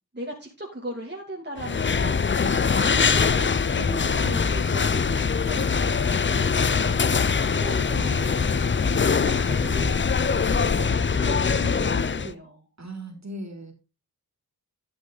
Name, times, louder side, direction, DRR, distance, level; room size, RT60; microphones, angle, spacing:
voice 1, 0.1-3.6 4.0-6.2 6.8-12.6, right 1 dB, 25° right, -1 dB, 2.4 m, -38 dB
sound 1, 1.6-12.3, left 5 dB, 30° left, 0.5 m, -23 dB
voice 2, 3.7-4.2 6.3-6.8 12.8-13.7, right 1 dB, 45° right, 5 dB, 3.4 m, -38 dB
sound 2, 3.8-11.3, left 2 dB, 75° left, 4.0 m, -40 dB
12.0 x 6.4 x 4.0 m, 0.29 s
cardioid pair, 45°, 40 cm